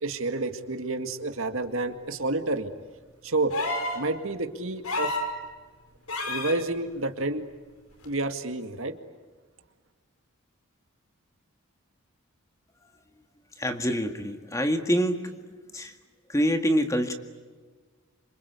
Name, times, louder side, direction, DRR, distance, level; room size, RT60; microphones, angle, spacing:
voice 1, 0.0-2.7 3.2-3.5 3.9-5.2 6.3-7.5 8.0-8.9, right 2 dB, 65° right, 7 dB, 2.0 m, -29 dB
sound 1, 3.5-4.0 4.8-5.3 6.1-6.6 8.0-8.1, left 2 dB, 80° left, 4.9 m, -29 dB
voice 2, 13.6-15.3 15.7-15.9 16.3-17.1, equal, 15° left, 6 dB, 1.8 m, -25 dB
28.0 x 26.0 x 8.3 m, 1.4 s
head